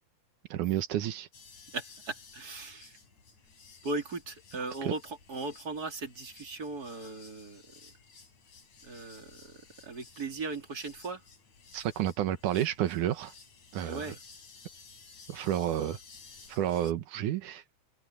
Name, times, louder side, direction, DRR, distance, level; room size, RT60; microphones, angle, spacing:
voice 1, 0.5-1.3 4.9-5.0 11.7-13.3 13.7-14.1 15.3-16.0 16.5-17.6, right 11 dB, 85° right, 2.7 m, -30 dB
sound 1, 1.3-16.9, left 4 dB, 70° left, 6.0 m, -55 dB
voice 2, 1.7-3.0 3.8-7.6 8.8-11.2 13.8-14.2, right 3 dB, 30° right, 3.7 m, -38 dB
open air
omnidirectional pair, 3.4 m